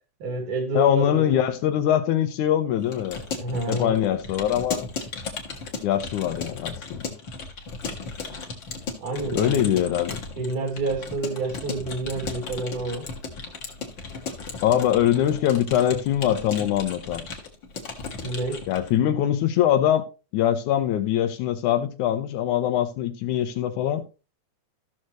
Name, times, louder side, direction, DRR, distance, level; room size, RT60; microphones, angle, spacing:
voice 1, 0.2-1.4 3.4-4.0 9.0-9.6 10.4-13.1 18.2-18.7, right 3 dB, 90° right, 4.1 m, -29 dB
voice 2, 0.7-3.2 3.7-4.9 5.8-7.1 9.3-10.2 14.6-17.2 18.7-20.1 20.3-24.1, left 11 dB, 80° left, 2.3 m, -23 dB
Keyboard (musical) / Computer keyboard, 2.8-18.9, left 4 dB, 45° left, 2.0 m, -36 dB
14.5 x 6.5 x 3.0 m
omnidirectional pair, 3.5 m